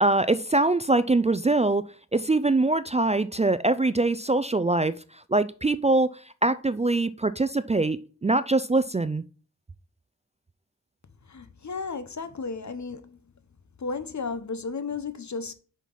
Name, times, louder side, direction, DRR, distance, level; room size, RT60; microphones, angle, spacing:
voice 1, 0.0-9.2, right 2 dB, 20° right, 0.3 m, -23 dB
voice 2, 11.3-13.2 13.8-15.5, left 4 dB, 60° left, 0.8 m, -34 dB
5.7 x 5.3 x 4.6 m
wide cardioid pair, 60°, 32 cm